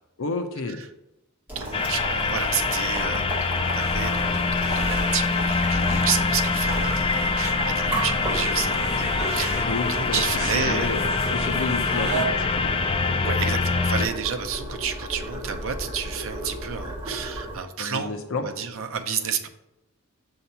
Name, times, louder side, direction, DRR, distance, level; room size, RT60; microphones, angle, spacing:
voice 1, 0.2-0.8 9.5-12.8 17.8-18.4, left 3 dB, 65° left, 5 dB, 0.6 m, -31 dB
Boiling, 1.5-17.6, right 1 dB, 10° right, 2.2 m, -33 dB
voice 2, 1.5-11.0 13.2-19.5, right 7 dB, 65° right, 6 dB, 0.6 m, -31 dB
sound 1, 1.7-14.1, left 4 dB, 25° left, 0.3 m, -25 dB
sound 2, 3.8-12.3, right 2 dB, 30° right, 1.2 m, -36 dB
6.7 x 2.8 x 5.5 m, 0.92 s
head